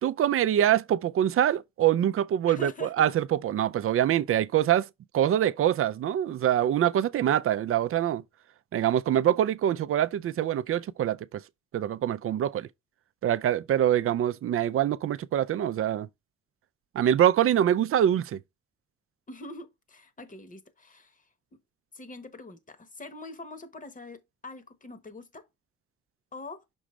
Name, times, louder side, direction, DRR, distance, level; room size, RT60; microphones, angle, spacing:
voice 1, 0.0-4.9 5.1-8.2 8.7-11.4 11.7-12.7 13.2-16.1 16.9-18.4, right 10 dB, 50° right, 0.4 m, -24 dB
voice 2, 2.4-3.1 13.9-14.0 19.3-21.3 21.9-25.5 26.3-26.6, left 2 dB, 25° left, 1.0 m, -44 dB
6.2 x 4.9 x 3.1 m
cardioid pair, 90°, 30 cm